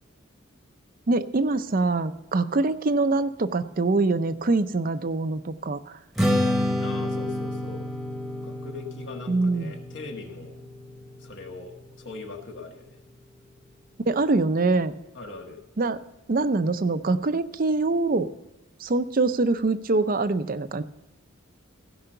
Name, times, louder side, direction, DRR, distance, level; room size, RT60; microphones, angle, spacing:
voice 1, 1.1-6.0 9.3-9.7 14.1-14.9 15.8-16.0 16.3-18.3 18.8-20.8, right 3 dB, 40° right, 12 dB, 0.5 m, -24 dB
Strum, 6.2-12.5, left 1 dB, ahead, 1.0 m, -29 dB
voice 2, 6.8-7.8 8.4-10.6 11.2-13.0 15.1-15.6, left 3 dB, 60° left, 2 dB, 1.6 m, -41 dB
16.0 x 5.6 x 6.8 m, 0.98 s
head